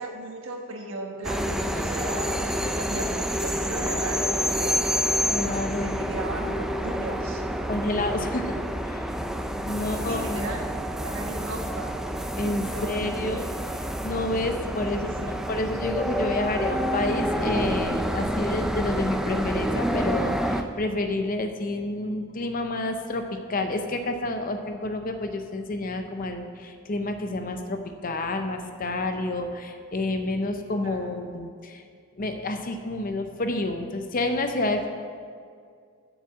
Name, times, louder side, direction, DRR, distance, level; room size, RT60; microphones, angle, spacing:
voice 1, 0.0-4.8 5.8-7.4 9.8-10.7 11.0-12.0 12.6-13.5 14.7-15.4 30.8-31.1, right 2 dB, 65° right, 1 dB, 1.4 m, -36 dB
sound 1, 1.2-20.6, equal, ahead, 0.3 m, -28 dB
voice 2, 5.3-6.0 7.7-8.6 8.8-9.0 9.6-10.5 12.4-13.5 14.0-31.8 32.2-34.9, left 2 dB, 40° left, 6 dB, 0.6 m, -29 dB
7.3 x 7.0 x 7.4 m, 2.2 s
head